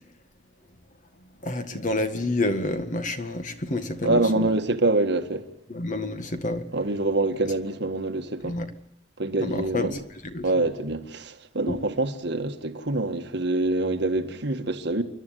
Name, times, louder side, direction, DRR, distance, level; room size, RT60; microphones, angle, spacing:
voice 1, 1.4-4.5 5.7-6.7 8.4-8.7 9.4-9.9 10.2-10.5 11.7-11.8, left 2 dB, 45° left, 1.8 m, -28 dB
voice 2, 4.0-5.5 6.7-8.6 9.2-10.0 10.4-15.0, right 2 dB, 65° right, 1.7 m, -25 dB
29.5 x 11.5 x 9.3 m
head